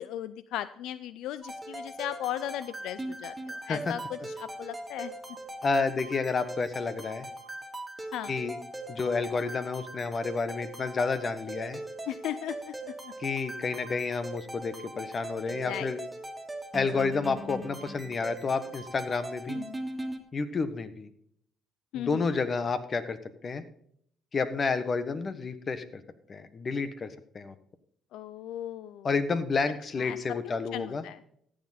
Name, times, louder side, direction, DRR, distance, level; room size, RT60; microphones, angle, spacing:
voice 1, 0.0-5.1 8.1-8.4 12.1-12.8 13.0-13.1 15.6-15.9 16.9-17.0 19.6-19.8 21.9-22.3 28.1-29.1 30.0-30.2 30.5-31.2, left 12 dB, 75° left, 16 dB, 0.3 m, -37 dB
sound 1, 1.4-20.2, right 1 dB, 15° right, 2.0 m, -40 dB
voice 2, 5.6-7.3 8.3-8.6 8.9-11.8 13.2-16.0 16.7-19.6 20.3-21.1 21.9-23.2 23.4-23.6 24.3-26.0 26.3-27.5 29.0-31.0, left 4 dB, 45° left, 11 dB, 1.2 m, -30 dB
14.0 x 7.7 x 4.2 m, 0.66 s
supercardioid pair, 60°, 0 cm